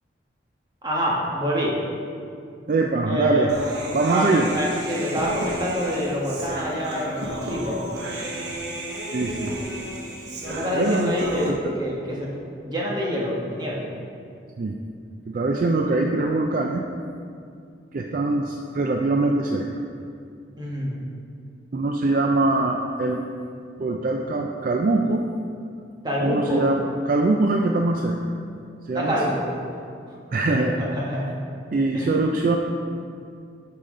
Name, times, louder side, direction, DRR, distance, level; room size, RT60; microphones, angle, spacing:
voice 1, 0.8-1.7 3.1-3.5 4.1-7.8 10.5-12.3 12.6-13.9 20.6-21.0 26.0-26.7 28.9-29.5 30.1-30.2 30.4-31.4 31.9-32.1, equal, 25° right, -4 dB, 1.4 m, -26 dB
voice 2, 2.7-3.6 3.9-4.5 9.1-9.5 10.7-11.1 11.5-11.6 14.6-14.8 15.3-16.8 17.9-19.8 21.7-23.2 23.8-25.3 26.2-28.3 28.8-29.2 30.3-30.7 31.7-32.6, right 2 dB, 50° right, 2 dB, 0.4 m, -23 dB
Human voice, 3.5-11.5, right 1 dB, 65° right, 1.3 m, -32 dB
10.5 x 5.8 x 3.8 m, 2.4 s
head